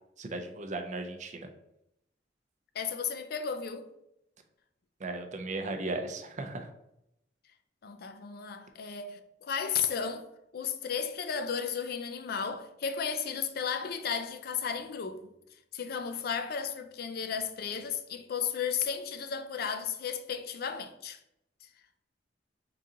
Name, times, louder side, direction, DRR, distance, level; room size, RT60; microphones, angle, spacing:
voice 1, 0.2-1.5 5.0-6.7, right 2 dB, 45° right, 0.5 m, -36 dB
voice 2, 2.7-3.9 7.8-10.3 10.5-15.3 15.7-21.2, left 7 dB, 60° left, 0.4 m, -34 dB
3.8 x 2.8 x 3.7 m
head